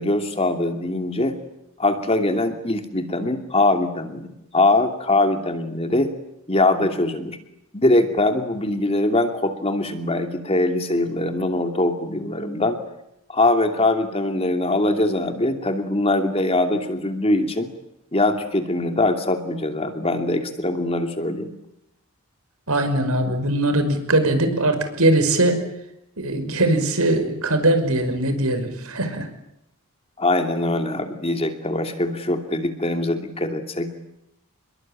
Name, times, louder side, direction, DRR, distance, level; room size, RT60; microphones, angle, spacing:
voice 1, 0.0-1.4 1.8-6.1 6.5-7.4 7.7-12.8 13.3-17.7 18.1-21.5 30.2-33.9, left 2 dB, 25° left, 6 dB, 2.7 m, -22 dB
voice 2, 22.7-25.6 26.2-29.3, right 1 dB, 85° right, 8 dB, 5.7 m, -21 dB
28.5 x 22.0 x 9.0 m, 0.82 s
head